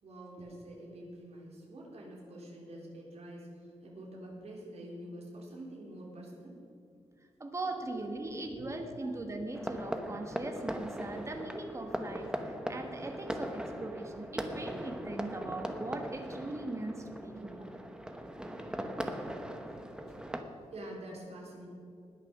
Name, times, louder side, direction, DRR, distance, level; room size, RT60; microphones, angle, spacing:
voice 1, 0.0-6.5 7.7-9.1 11.1-11.3 20.4-21.7, right 1 dB, 65° right, -3 dB, 3.9 m, -47 dB
voice 2, 7.4-17.7, right 2 dB, 25° right, 4 dB, 1.5 m, -40 dB
sound 1, 9.5-20.4, equal, 5° right, 0.9 m, -39 dB
19.5 x 7.0 x 6.1 m, 2.5 s
wide cardioid pair, 155°, 12 cm